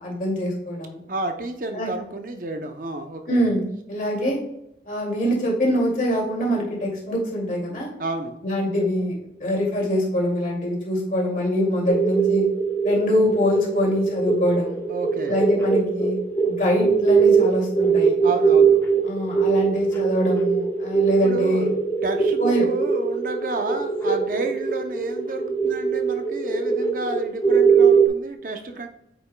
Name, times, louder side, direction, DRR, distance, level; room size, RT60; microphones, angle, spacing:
voice 1, 0.0-1.0 1.7-1.9 3.3-3.6 3.9-4.4 4.9-7.9 8.4-9.1 9.4-12.5 12.8-14.8 15.3-16.2 16.5-18.2 19.0-21.7 22.4-22.6, equal, 45° left, -3 dB, 2.3 m, -24 dB
voice 2, 1.1-3.5 8.0-8.4 14.9-15.4 18.2-18.8 21.2-21.7 22.0-28.9, right 2 dB, 50° right, 6 dB, 0.6 m, -31 dB
sound 1, 11.9-28.1, right 5 dB, 15° left, 0.8 m, -21 dB
8.5 x 5.5 x 2.2 m, 0.84 s
head